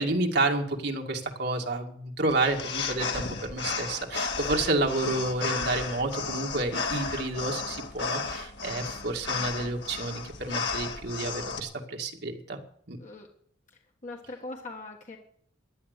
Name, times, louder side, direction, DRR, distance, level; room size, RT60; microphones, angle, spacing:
voice 1, 0.0-12.6 12.9-13.0, right 2 dB, 60° right, 2 dB, 2.2 m, -30 dB
sound 1, 2.3-11.6, left 4 dB, 65° left, 2.0 m, -33 dB
voice 2, 13.7-15.2, left 2 dB, 40° left, 1 dB, 1.6 m, -41 dB
16.0 x 10.5 x 6.7 m, 0.65 s
head